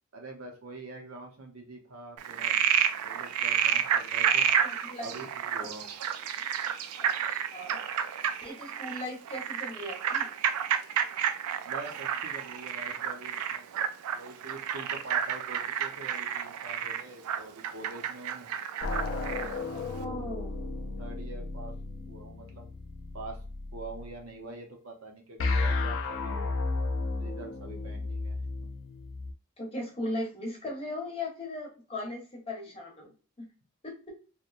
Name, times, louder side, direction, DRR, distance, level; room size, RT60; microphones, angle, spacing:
voice 1, 0.1-2.6 3.0-4.5 5.0-5.9 11.6-13.7 14.1-18.5 19.1-19.6 20.1-20.4 21.0-21.7 22.1-22.7 23.1-23.4 23.7-26.6 27.2-28.3, right 2 dB, 70° right, 2 dB, 0.7 m, -45 dB
Frog, 2.2-19.6, right 8 dB, 90° right, 0.3 m, -30 dB
voice 2, 4.6-5.2 5.5-5.7 7.0-7.8 8.4-10.3 19.7-20.5 29.6-33.4 33.8-34.1, left 1 dB, 25° left, -1 dB, 0.9 m, -38 dB
sound 1, 18.8-24.1 25.4-29.3, left 3 dB, 60° left, 0.4 m, -33 dB
2.9 x 2.1 x 2.4 m, 0.36 s
head